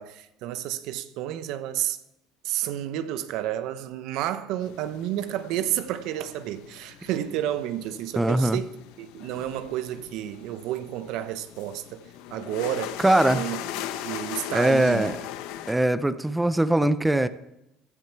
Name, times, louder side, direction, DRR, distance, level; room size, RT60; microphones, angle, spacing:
voice 1, 0.0-2.0 2.4-13.0 13.3-13.6 14.0-15.1, right 12 dB, 70° right, 0.9 m, -31 dB
sound 1, 4.6-15.7, left 12 dB, 85° left, 0.9 m, -39 dB
voice 2, 8.2-8.6 13.0-13.4 14.5-15.1 15.7-17.3, right 1 dB, 5° right, 0.5 m, -21 dB
15.5 x 11.0 x 4.6 m
cardioid pair, 130°, 0 cm